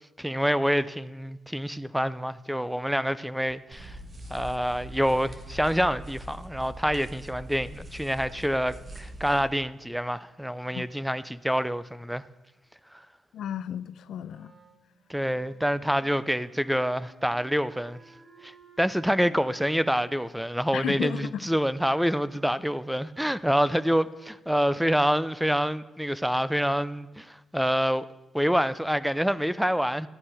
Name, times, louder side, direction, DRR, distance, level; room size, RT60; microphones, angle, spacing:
voice 1, 0.2-4.0 4.3-12.2 15.1-18.0 18.4-18.5 18.8-28.1 28.3-30.1, equal, 5° right, 0.4 m, -27 dB
sound 1, 3.7-9.5, equal, 35° right, 1.5 m, -42 dB
voice 2, 13.3-14.5 20.7-21.5, left 9 dB, 80° left, 0.4 m, -33 dB
Wind instrument woodwind instrument, 14.2-22.5, right 4 dB, 70° right, 2.5 m, -56 dB
12.5 x 8.8 x 4.8 m
cardioid pair, 85°, 0 cm